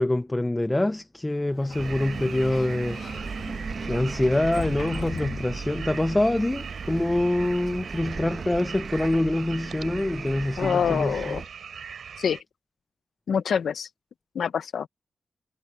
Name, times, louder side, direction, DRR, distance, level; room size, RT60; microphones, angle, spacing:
voice 1, 0.0-11.4, left 1 dB, 15° left, 0.5 m, -25 dB
Sliding door, 1.4-6.1, left 6 dB, 70° left, 2.5 m, -40 dB
sound 1, 1.7-12.4, right 7 dB, 75° right, 4.2 m, -41 dB
Bus, 1.8-11.5, right 5 dB, 50° right, 1.1 m, -37 dB
voice 2, 10.6-11.4 12.2-12.4 13.3-13.9 14.3-14.9, left 7 dB, 85° left, 0.7 m, -25 dB
wide cardioid pair, 135°, 0 cm